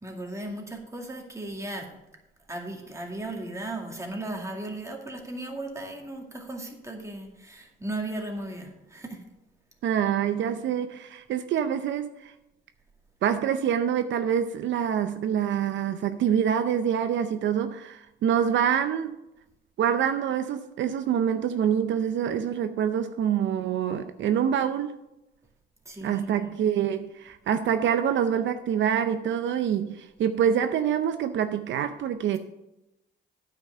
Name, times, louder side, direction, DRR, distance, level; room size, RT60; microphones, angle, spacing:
voice 1, 0.0-2.0 2.5-9.2 25.9-26.5, right 1 dB, 15° right, 1 dB, 2.2 m, -36 dB
voice 2, 9.8-12.3 13.2-19.2 19.8-24.9 26.0-32.4, right 8 dB, 70° right, 9 dB, 0.6 m, -26 dB
9.3 x 5.8 x 6.7 m, 0.94 s
cardioid pair, 90°, 20 cm